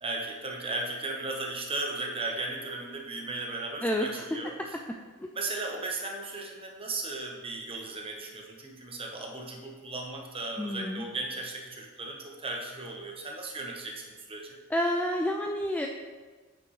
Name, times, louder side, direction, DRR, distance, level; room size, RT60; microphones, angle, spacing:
voice 1, 0.0-4.6 5.3-14.5, right 2 dB, 25° right, 0 dB, 1.1 m, -36 dB
voice 2, 3.8-4.4 5.2-5.3 10.6-11.0 14.7-15.9, left 1 dB, 5° left, 2 dB, 0.3 m, -29 dB
8.6 x 6.0 x 3.2 m, 1.4 s
head